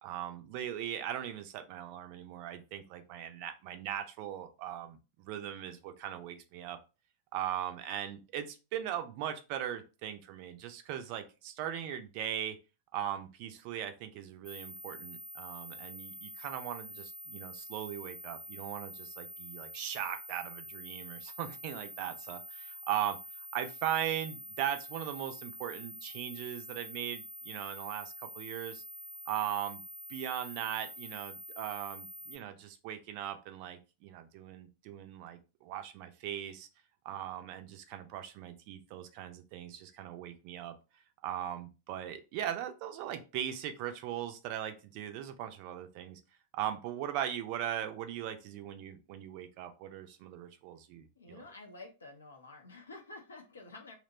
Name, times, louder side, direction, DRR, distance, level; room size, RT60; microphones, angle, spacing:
voice 1, 0.0-6.8 7.3-12.6 12.9-28.8 29.3-29.8 30.1-36.7 37.0-40.7 41.2-46.2 46.5-51.4, right 10 dB, 45° right, 8 dB, 0.4 m, -39 dB
sound 1, 14.5-32.4, equal, ahead, 0.6 m, -47 dB
voice 2, 51.2-53.9, left 2 dB, 70° left, 2 dB, 0.5 m, -50 dB
2.8 x 2.0 x 2.6 m, 0.30 s
figure-of-eight pair, 90°, 0 cm